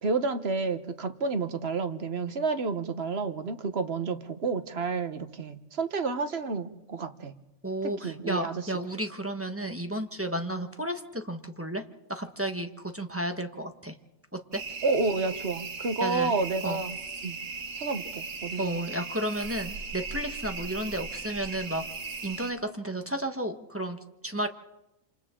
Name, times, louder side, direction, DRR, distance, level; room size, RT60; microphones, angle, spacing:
voice 1, 0.0-7.3 8.0-8.6 14.8-17.0 17.2-17.4 17.8-18.9, right 4 dB, 55° right, 9 dB, 1.4 m, -30 dB
voice 2, 7.6-11.8 12.1-14.0 14.5-14.6 16.0-16.3 16.6-16.8 18.6-21.8 22.2-24.5, right 1 dB, 10° right, 5 dB, 1.1 m, -32 dB
sound 1, 14.5-22.5, right 4 dB, 75° right, 1.7 m, -38 dB
28.0 x 27.5 x 3.8 m, 0.95 s
omnidirectional pair, 1.4 m